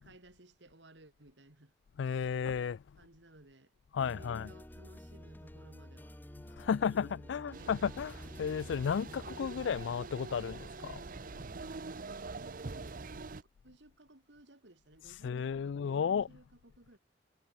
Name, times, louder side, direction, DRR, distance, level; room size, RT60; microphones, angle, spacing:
voice 1, 0.0-1.7 3.0-3.7 4.1-6.2 6.8-8.0 11.7-17.0, right 1 dB, 65° right, 2.8 m, -58 dB
voice 2, 2.0-3.0 3.9-4.5 6.5-11.6 15.0-16.4, left 7 dB, 70° left, 0.3 m, -34 dB
sound 1, 4.0-9.4, left 1 dB, 10° left, 0.8 m, -50 dB
sound 2, 7.5-13.4, right 3 dB, 45° right, 0.7 m, -45 dB
head